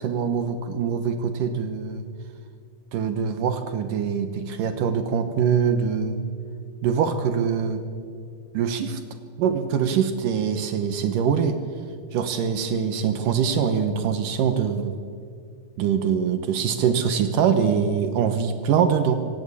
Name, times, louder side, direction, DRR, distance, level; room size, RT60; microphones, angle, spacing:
voice 1, 0.0-2.0 2.9-6.2 6.8-7.8 8.5-9.0 9.4-11.6 12.1-15.0 15.8-19.2, right 7 dB, 70° right, 9 dB, 2.7 m, -23 dB
23.5 x 17.0 x 8.5 m, 2.2 s
omnidirectional pair, 4.0 m